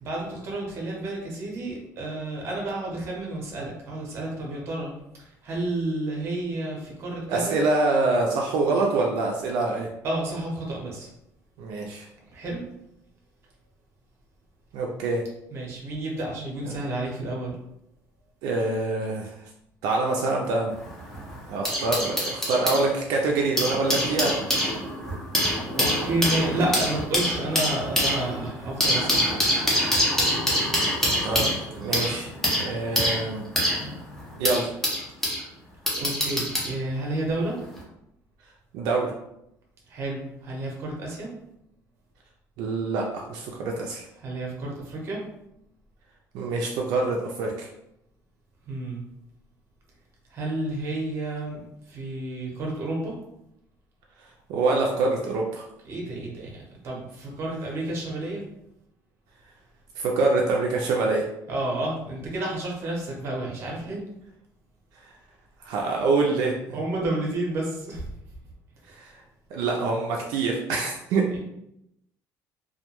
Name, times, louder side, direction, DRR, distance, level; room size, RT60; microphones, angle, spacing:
voice 1, 0.0-4.9 5.2-7.6 10.0-11.1 12.3-12.6 15.5-17.5 25.7-29.4 36.0-37.6 39.9-41.3 44.2-45.2 48.7-49.0 50.3-53.2 55.8-58.4 61.5-64.0 66.7-68.1 71.3-71.4, right 2 dB, 40° right, -1 dB, 0.7 m, -30 dB
voice 2, 7.3-9.9 11.6-12.1 14.7-15.2 16.6-16.7 18.4-19.3 19.8-20.7 21.5-24.4 31.2-33.4 34.4-34.7 38.7-39.1 42.6-44.1 46.3-47.7 54.5-55.6 60.0-61.3 65.6-66.8 68.9-69.1 69.5-71.3, right 3 dB, 75° right, -1 dB, 0.4 m, -25 dB
sound 1, 20.7-22.8 23.4-35.4 35.9-36.7 37.6-37.8, equal, 5° left, 0.5 m, -25 dB
2.2 x 2.2 x 2.9 m, 0.81 s
cardioid pair, 175°, 7 cm